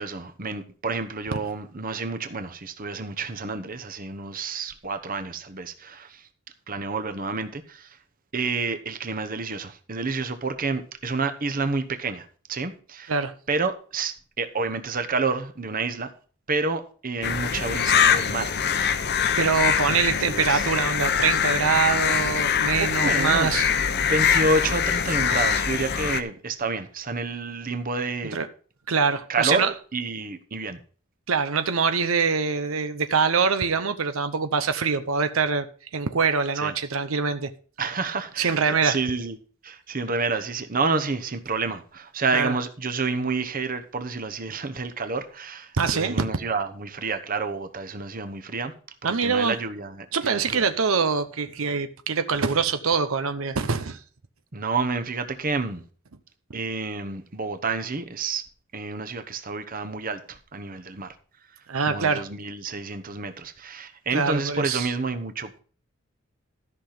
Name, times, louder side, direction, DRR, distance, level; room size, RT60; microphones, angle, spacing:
voice 1, 0.0-6.3 6.7-8.0 8.3-13.1 13.5-16.1 16.5-18.6 19.2-19.4 19.9-20.6 22.8-23.6 23.9-28.4 29.3-30.8 36.6-36.7 37.8-39.4 39.6-48.7 49.0-50.6 54.5-55.8 56.5-58.4 58.7-61.1 61.9-65.6, right 3 dB, 45° right, 1.0 m, -29 dB
sound 1, 17.2-26.2, left 7 dB, 55° left, 0.8 m, -23 dB
voice 2, 19.1-23.7 28.3-28.5 28.9-29.7 31.3-35.7 35.9-37.5 38.4-39.0 42.3-42.6 45.8-46.2 49.0-49.6 50.1-54.0 61.7-62.2 64.1-64.9, right 5 dB, 85° right, 0.8 m, -24 dB
13.5 x 5.9 x 5.0 m
head